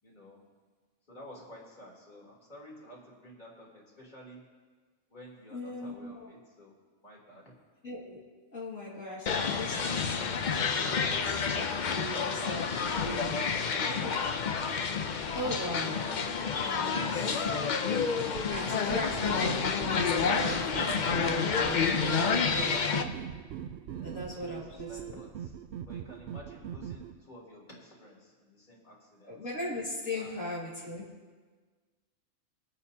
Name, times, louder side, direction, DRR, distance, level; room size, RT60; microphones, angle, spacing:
voice 1, 0.0-0.4 1.1-4.4 5.1-6.7 7.0-7.5 18.8-19.5 23.7-29.4 30.1-30.4, equal, 35° left, -5 dB, 3.5 m, -51 dB
voice 2, 5.5-6.3 7.8-8.2 8.5-10.2 10.5-12.7 13.0-13.4 13.8-15.1 15.3-17.5 18.5-23.1 24.0-25.2 29.2-31.0, left 1 dB, 75° left, -6 dB, 2.5 m, -39 dB
sound 1, 9.3-23.0, left 5 dB, 50° left, 0.6 m, -29 dB
sound 2, 18.3-27.2, right 9 dB, 65° right, 0.8 m, -41 dB
23.5 x 8.8 x 2.8 m, 1.4 s
omnidirectional pair, 1.4 m